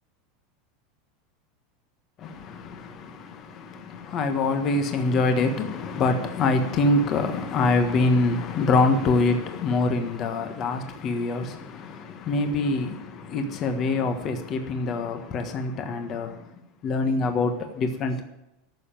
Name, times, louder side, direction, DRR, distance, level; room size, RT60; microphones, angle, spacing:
voice 1, 2.2-16.4 16.8-18.2, left 3 dB, 30° left, 1.4 m, -25 dB
13.5 x 7.2 x 9.1 m
supercardioid pair, 160°, 0 cm